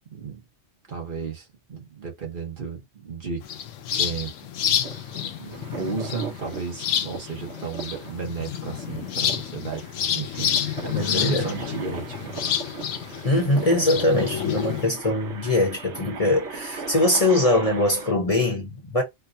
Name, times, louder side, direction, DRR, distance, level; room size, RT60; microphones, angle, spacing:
voice 1, 0.1-0.4 0.9-3.4 3.9-4.3 4.7-4.8 5.2-9.8 10.1-10.6 10.8-12.5, right 5 dB, 45° right, 1.1 m, -34 dB
sound 1, 3.4-14.9, left 9 dB, 90° left, 1.0 m, -29 dB
sound 2, 4.8-18.1, right 4 dB, 70° right, 1.2 m, -39 dB
voice 2, 10.9-11.5 13.2-19.0, left 2 dB, 35° left, 0.9 m, -22 dB
4.5 x 2.2 x 2.6 m
omnidirectional pair, 1.3 m